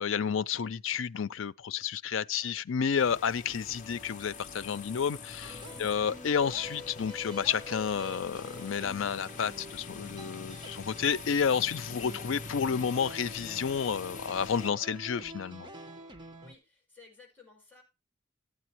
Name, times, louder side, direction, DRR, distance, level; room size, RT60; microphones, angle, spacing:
voice 1, 0.0-15.7, left 7 dB, 75° left, 0.5 m, -31 dB
voice 2, 2.1-2.5 16.4-17.8, left 4 dB, 10° left, 6.0 m, -57 dB
sound 1, 3.0-14.7, left 5 dB, 40° left, 0.7 m, -45 dB
sound 2, 3.8-15.0, left 5 dB, 10° right, 2.7 m, -56 dB
sound 3, 5.4-16.5, equal, 25° right, 1.3 m, -47 dB
14.5 x 8.5 x 3.0 m
head